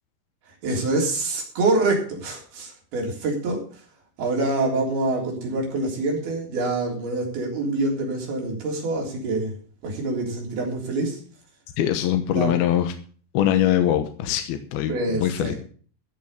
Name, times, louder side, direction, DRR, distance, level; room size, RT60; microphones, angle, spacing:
voice 1, 0.6-3.6 4.2-9.5 9.8-11.2 12.4-12.5 14.9-15.6, right 2 dB, 60° right, -1 dB, 5.4 m, -25 dB
voice 2, 11.8-12.9 13.3-15.5, left 11 dB, 70° left, 7 dB, 2.8 m, -22 dB
15.0 x 6.6 x 6.7 m, 0.43 s
omnidirectional pair, 5.0 m